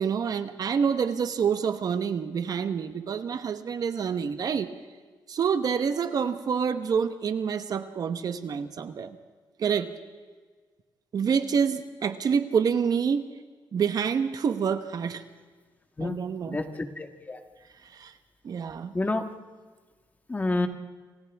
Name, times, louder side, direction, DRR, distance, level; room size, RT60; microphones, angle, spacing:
voice 1, 0.0-4.7 5.3-9.2 9.6-9.9 11.1-13.2 13.7-15.2 16.0-16.6 17.8-18.1 18.4-18.9, right 6 dB, 55° right, 9 dB, 1.2 m, -27 dB
voice 2, 16.0-17.4 18.9-19.3 20.3-20.7, left 2 dB, 20° left, 6 dB, 1.7 m, -29 dB
29.0 x 25.5 x 3.6 m, 1.4 s
cardioid pair, 105°, 8 cm